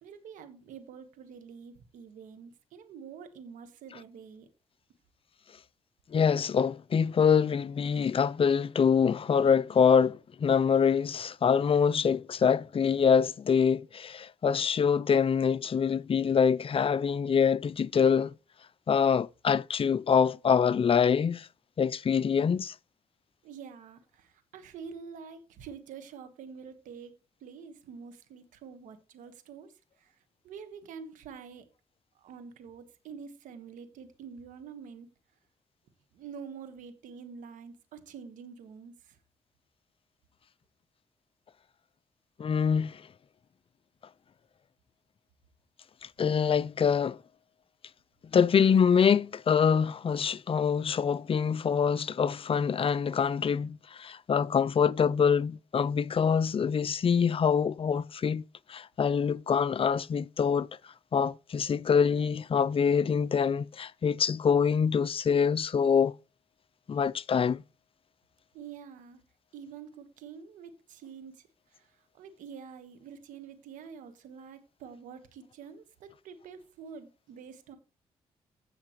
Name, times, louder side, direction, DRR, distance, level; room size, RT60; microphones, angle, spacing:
voice 1, 0.0-4.5 23.4-27.1 27.4-31.7 32.2-35.1 36.1-39.2 68.5-69.2 69.5-77.8, right 6 dB, 85° right, 1.5 m, -47 dB
voice 2, 6.1-18.3 18.9-21.5 21.8-22.7 42.4-43.0 46.0-47.2 48.3-58.4 58.7-60.7 61.1-66.1 66.9-67.6, left 6 dB, 45° left, 0.5 m, -25 dB
16.0 x 5.8 x 3.1 m
supercardioid pair, 55°, 13 cm